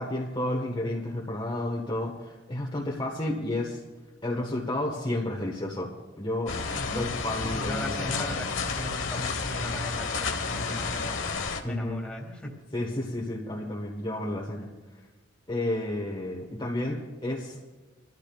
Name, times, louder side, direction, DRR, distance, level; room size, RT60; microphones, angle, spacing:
voice 1, 0.0-3.8 4.2-5.9 6.2-6.6 6.9-8.4 11.6-12.0 12.7-14.7 15.5-17.6, left 1 dB, 25° left, -3 dB, 1.4 m, -31 dB
sound 1, 6.5-11.6, left 4 dB, 80° left, 1.2 m, -31 dB
voice 2, 6.7-7.1 7.5-11.2 11.6-12.6, left 1 dB, 5° left, -1 dB, 2.3 m, -37 dB
24.5 x 14.0 x 2.4 m, 1.3 s
head